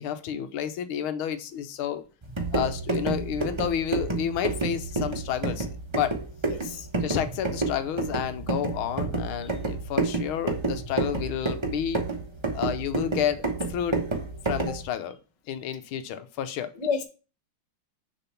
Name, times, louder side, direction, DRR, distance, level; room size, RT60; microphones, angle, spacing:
voice 1, 0.0-2.0 2.5-5.7 5.9-6.2 7.0-12.0 12.5-14.0 14.4-15.2 15.5-16.7, left 9 dB, 90° left, 1.6 m, -30 dB
sound 1, 2.2-14.8, right 3 dB, 20° right, 0.7 m, -30 dB
voice 2, 6.5-6.9 14.7-14.8 16.7-17.0, left 5 dB, 50° left, 0.4 m, -30 dB
6.7 x 3.8 x 5.7 m
omnidirectional pair, 2.2 m